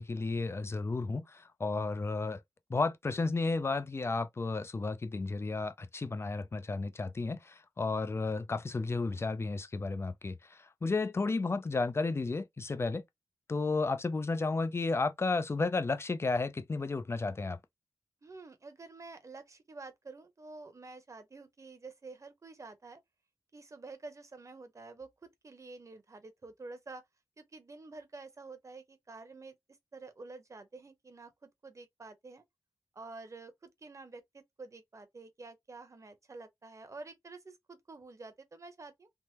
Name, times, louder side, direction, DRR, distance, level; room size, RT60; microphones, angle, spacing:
voice 1, 0.0-2.4 2.7-13.0 13.5-17.6, left 3 dB, 35° left, 0.5 m, -33 dB
voice 2, 18.2-23.0 23.5-27.0 27.4-29.6 29.9-32.4 32.9-39.1, right 3 dB, 45° right, 0.9 m, -49 dB
3.5 x 2.0 x 2.9 m
cardioid pair, 65°, 7 cm